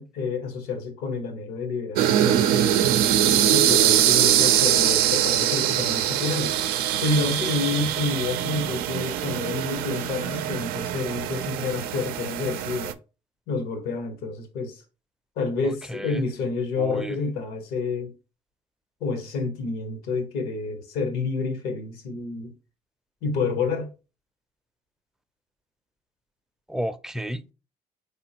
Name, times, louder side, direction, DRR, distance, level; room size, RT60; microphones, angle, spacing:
voice 1, 0.0-2.7 3.5-6.6 7.0-12.9 13.5-14.8 15.4-18.1 19.0-22.5 23.2-23.9, left 4 dB, 85° left, 1.2 m, -29 dB
sound 1, 2.0-12.9, right 11 dB, 80° right, 0.5 m, -23 dB
voice 2, 15.9-16.3 16.8-17.1 26.7-27.5, equal, 5° right, 0.5 m, -32 dB
4.0 x 3.7 x 2.9 m
supercardioid pair, 70°, 15 cm